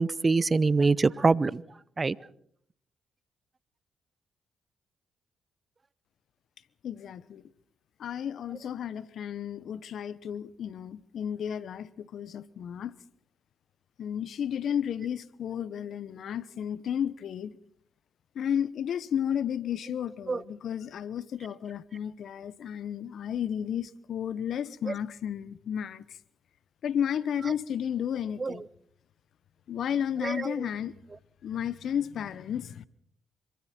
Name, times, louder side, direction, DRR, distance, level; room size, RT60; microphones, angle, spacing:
voice 1, 0.0-1.6 2.0-2.2 20.3-20.4 24.9-25.0 28.4-28.6 30.2-30.5, right 4 dB, 35° right, 0.8 m, -24 dB
voice 2, 6.8-7.4 8.0-12.9 14.0-17.6 18.3-26.2 26.8-28.7 29.7-30.9 31.4-32.8, left 9 dB, 70° left, 1.0 m, -33 dB
26.0 x 24.0 x 4.5 m
supercardioid pair, 50°, 0 cm